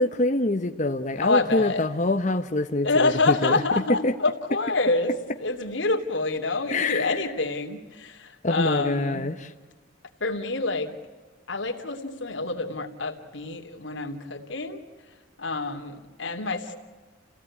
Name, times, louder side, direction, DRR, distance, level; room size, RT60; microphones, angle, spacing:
voice 1, 0.0-3.6 4.0-4.1 6.7-7.2 8.4-9.5, left 2 dB, 40° left, 5 dB, 1.1 m, -25 dB
voice 2, 1.2-1.8 2.8-9.2 10.2-10.9 11.5-14.8 15.4-16.8, left 3 dB, 80° left, 5 dB, 2.9 m, -27 dB
29.5 x 17.0 x 9.8 m, 1.3 s
head